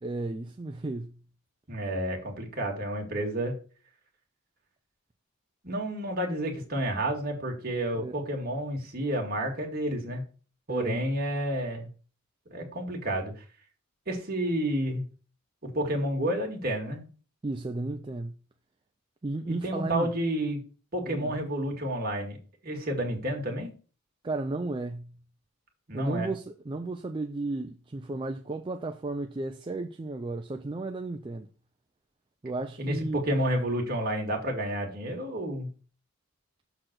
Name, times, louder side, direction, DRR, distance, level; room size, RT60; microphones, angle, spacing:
voice 1, 0.0-1.2 8.0-8.1 10.7-11.1 17.4-18.4 19.2-20.1 21.1-21.3 24.2-25.2 25.9-31.5 32.4-33.2, right 2 dB, 20° right, 0.3 m, -34 dB
voice 2, 1.7-3.5 5.6-10.2 10.7-11.9 12.5-13.4 14.1-15.0 15.7-17.1 19.5-20.6 20.9-22.4 22.6-23.7 25.9-26.3 32.8-35.7, right 1 dB, 40° right, 1.9 m, -30 dB
6.5 x 4.0 x 6.0 m
head